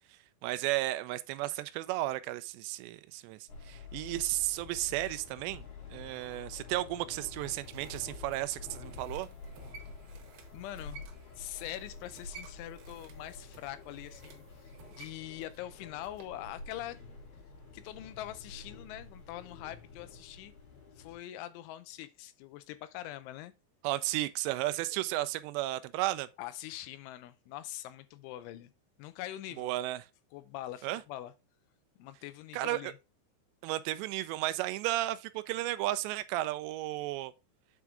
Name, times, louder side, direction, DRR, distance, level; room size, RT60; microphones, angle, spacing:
voice 1, 0.4-3.4 3.7-5.6 5.9-9.3 23.8-26.3 29.6-30.0 30.8-31.0 32.5-32.9 33.6-37.3, right 16 dB, 85° right, 2.6 m, -33 dB
sound 1, 3.5-21.2, left 4 dB, 60° left, 4.5 m, -48 dB
sound 2, 7.0-16.4 16.7-16.8, right 6 dB, 70° right, 2.7 m, -56 dB
voice 2, 10.5-11.0 11.4-17.0 17.7-20.5 21.0-23.5 26.4-28.7 29.0-29.7 30.3-31.3 32.0-33.0, left 14 dB, 85° left, 3.1 m, -43 dB
8.3 x 4.6 x 3.6 m
omnidirectional pair, 5.4 m